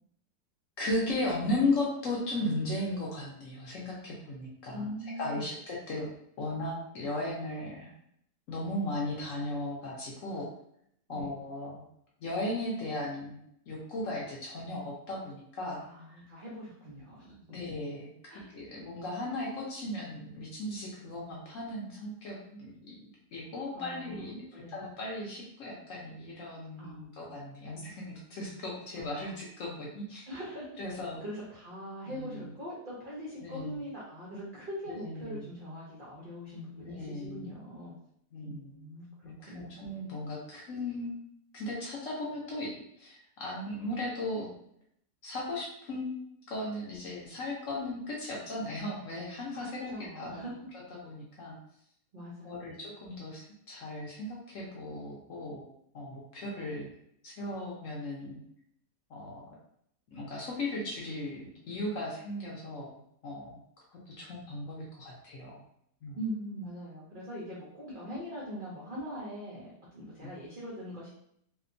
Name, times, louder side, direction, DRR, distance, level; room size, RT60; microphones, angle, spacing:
voice 1, 0.8-4.9 5.2-6.1 6.4-7.9 8.5-10.5 11.1-11.9 12.2-15.8 16.1-16.2 17.5-30.2 30.8-31.2 32.1-32.5 33.4-33.8 34.9-35.5 36.8-37.5 38.3-38.8 39.2-41.1 41.5-42.7 43.0-44.5 45.2-50.4 50.7-51.6 52.4-55.7 55.9-56.9 57.2-58.4 59.1-59.4 60.1-63.6 63.9-65.6 66.0-66.2 70.2-70.3, left 1 dB, 65° left, -4 dB, 0.8 m, -36 dB
voice 2, 4.7-5.5 11.1-11.3 15.8-17.6 18.3-18.5 23.7-24.8 26.8-27.4 29.0-29.4 30.3-37.9 38.4-39.1 39.5-39.9 49.5-50.7 52.1-52.8 66.2-71.1, equal, 80° right, -7 dB, 0.4 m, -42 dB
2.8 x 2.2 x 2.5 m, 0.71 s
omnidirectional pair, 1.8 m